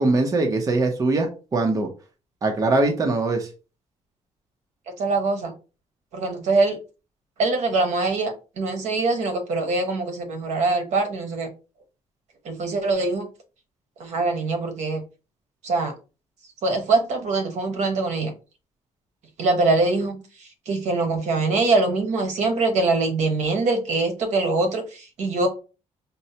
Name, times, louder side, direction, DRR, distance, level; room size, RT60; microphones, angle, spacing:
voice 1, 0.0-1.9 2.4-3.5, right 2 dB, 30° right, 0.6 m, -22 dB
voice 2, 5.0-5.5 6.1-6.8 7.4-11.5 12.4-13.2 14.0-15.0 15.6-15.9 16.6-18.3 19.4-20.2 20.7-25.5, right 3 dB, 70° right, 1.0 m, -23 dB
5.3 x 2.0 x 2.7 m
cardioid pair, 140°, 12 cm